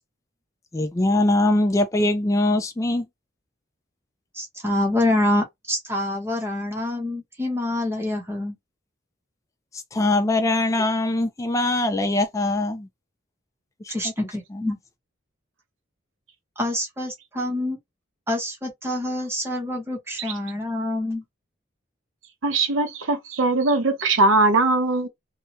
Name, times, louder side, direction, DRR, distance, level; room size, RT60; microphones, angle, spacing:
voice 1, 0.7-3.1 9.7-12.9 13.8-14.1 14.5-14.6, left 2 dB, 15° left, 0.3 m, -22 dB
voice 2, 4.4-8.6 13.9-14.8 16.6-17.8 18.3-21.2, left 1 dB, 10° right, 0.8 m, -26 dB
voice 3, 22.4-25.1, right 2 dB, 90° right, 0.8 m, -20 dB
2.7 x 2.2 x 2.8 m
head